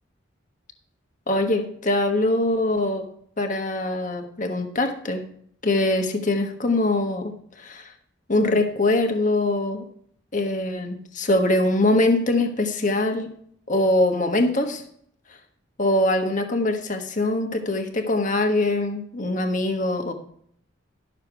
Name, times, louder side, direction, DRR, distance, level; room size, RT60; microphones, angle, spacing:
voice 1, 1.3-3.1 3.4-5.2 5.6-7.9 8.3-9.8 10.3-13.3 13.7-14.8 15.8-20.1, left 2 dB, 40° left, 5 dB, 1.3 m, -23 dB
12.0 x 6.7 x 4.6 m, 0.65 s
head